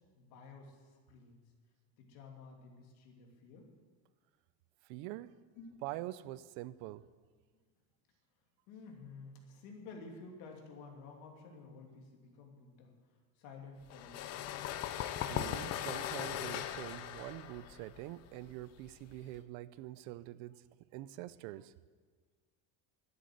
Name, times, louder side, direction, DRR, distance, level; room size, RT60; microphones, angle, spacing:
voice 1, 0.1-1.4 2.0-3.7 5.6-5.7 8.7-12.9 13.4-14.3, left 4 dB, 65° left, 2 dB, 2.9 m, -52 dB
voice 2, 4.9-5.4 5.8-7.0 15.2-20.6 20.9-21.7, right 16 dB, 65° right, 17 dB, 0.6 m, -45 dB
sound 1, 13.9-19.4, left 11 dB, 35° left, 0.6 m, -39 dB
12.5 x 9.8 x 7.8 m, 1.5 s
cardioid pair, 165°, 43 cm